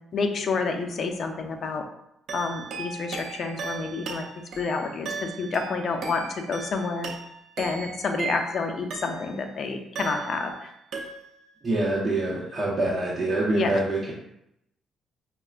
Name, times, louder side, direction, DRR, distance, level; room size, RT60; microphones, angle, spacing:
voice 1, 0.1-1.8 2.3-4.3 4.6-7.1 7.6-10.7 13.5-13.7, left 4 dB, 55° left, 5 dB, 0.5 m, -29 dB
sound 1, 2.3-9.5 9.9-10.6 10.9-11.5, right 4 dB, 65° right, 0.6 m, -37 dB
voice 2, 11.6-14.1, right 2 dB, 35° right, -7 dB, 0.8 m, -25 dB
5.4 x 2.1 x 2.4 m, 0.81 s
cardioid pair, 90°, 0 cm